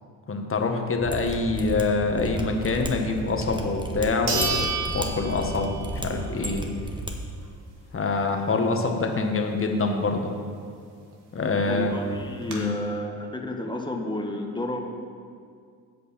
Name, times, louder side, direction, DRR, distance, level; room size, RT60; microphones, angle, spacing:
voice 1, 0.3-6.6 7.9-10.3 11.3-11.9 12.4-12.7, left 3 dB, 30° left, 3 dB, 1.5 m, -25 dB
Mechanisms, 1.0-7.1 7.4-7.5, right 2 dB, 10° right, 1.3 m, -33 dB
sound 1, 3.4-3.5 4.3-6.0 6.4-6.5 11.1-11.2 11.4-11.5 12.1-12.5, right 4 dB, 65° right, 2.0 m, -30 dB
voice 2, 11.7-14.9, left 1 dB, 10° left, 2 dB, 1.4 m, -31 dB
15.5 x 5.4 x 4.3 m, 2.2 s
supercardioid pair, 70°, 42 cm